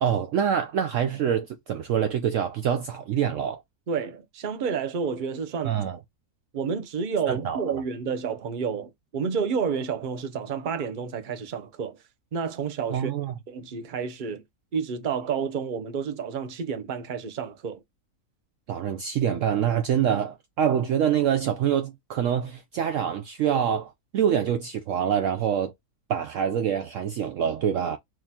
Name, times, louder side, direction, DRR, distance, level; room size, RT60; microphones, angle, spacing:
voice 1, 0.0-3.6 5.6-6.0 7.3-7.6 12.9-13.3 18.7-25.7 26.1-28.0, right 8 dB, 70° right, 0.8 m, -25 dB
voice 2, 3.9-5.8 6.5-12.0 12.3-13.1 13.5-14.4 14.7-17.8, right 6 dB, 40° right, 0.8 m, -30 dB
3.9 x 3.0 x 2.7 m
omnidirectional pair, 1.6 m